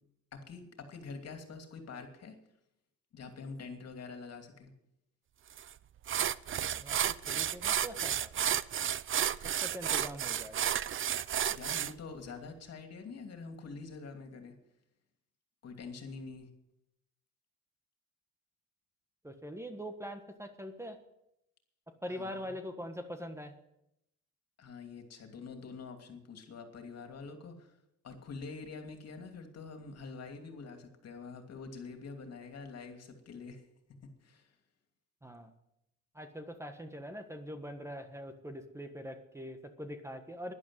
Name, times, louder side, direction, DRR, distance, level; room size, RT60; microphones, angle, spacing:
voice 1, 0.3-2.4 3.1-4.7 11.5-14.6 15.6-16.5 22.1-22.4 24.6-27.7 28.0-33.6 34.0-34.5, left 4 dB, 55° left, 5 dB, 2.7 m, -46 dB
sound 1, 5.6-5.7 6.1-11.9, right 10 dB, 45° right, 0.5 m, -32 dB
voice 2, 7.3-8.3 9.4-10.7 19.2-21.0 22.0-23.5 35.2-35.5 36.1-40.5, equal, 10° right, 7 dB, 1.4 m, -43 dB
11.5 x 11.0 x 7.6 m, 0.81 s
cardioid pair, 90°, 30 cm